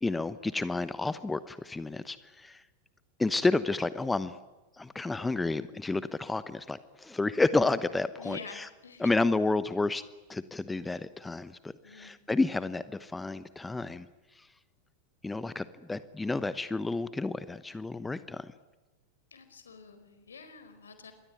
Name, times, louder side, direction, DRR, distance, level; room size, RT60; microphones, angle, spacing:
voice 1, 0.0-2.6 3.2-4.4 4.8-8.7 9.0-10.0 10.3-14.1 14.4-14.5 15.2-18.5, left 3 dB, 10° left, 15 dB, 1.0 m, -30 dB
voice 2, 8.2-9.2 11.8-12.2 19.3-21.1, left 5 dB, 70° left, 9 dB, 4.8 m, -47 dB
27.0 x 22.5 x 9.2 m, 1.2 s
figure-of-eight pair, 90°, 0 cm